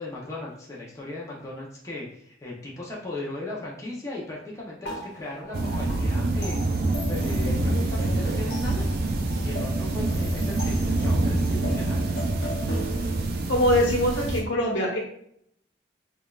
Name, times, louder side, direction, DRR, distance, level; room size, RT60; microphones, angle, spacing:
voice 1, 0.0-8.9 9.4-12.1, left 2 dB, 15° left, -5 dB, 0.6 m, -37 dB
sound 1, 4.8-13.2, left 1 dB, 55° left, 0.9 m, -39 dB
sound 2, 5.5-14.4, right 2 dB, 50° right, 0.4 m, -26 dB
voice 2, 13.5-15.0, left 1 dB, 80° left, -1 dB, 1.0 m, -23 dB
5.0 x 2.3 x 2.3 m, 0.69 s
head